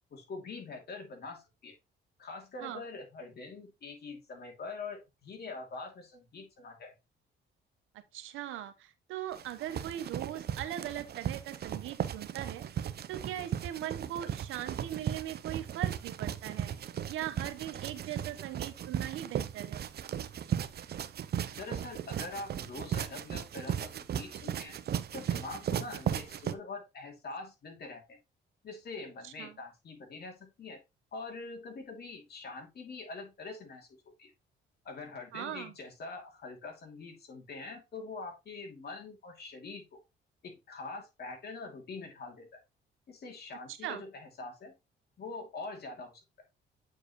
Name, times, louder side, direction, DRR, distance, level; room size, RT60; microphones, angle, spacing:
voice 1, 0.1-1.7 2.2-6.9 21.5-24.8 25.1-28.2 28.6-30.8 31.1-33.9 34.2-34.3 34.8-40.0 40.4-42.6 43.1-44.7 45.2-46.2, left 3 dB, 55° left, 2.6 m, -44 dB
voice 2, 7.9-12.6 13.1-16.7 17.1-19.8 29.2-29.6 35.3-35.8 43.8-44.0, right 12 dB, 90° right, 1.0 m, -40 dB
sound 1, 9.3-26.5, right 9 dB, 55° right, 0.7 m, -36 dB
8.4 x 4.8 x 3.0 m
cardioid pair, 90°, 20 cm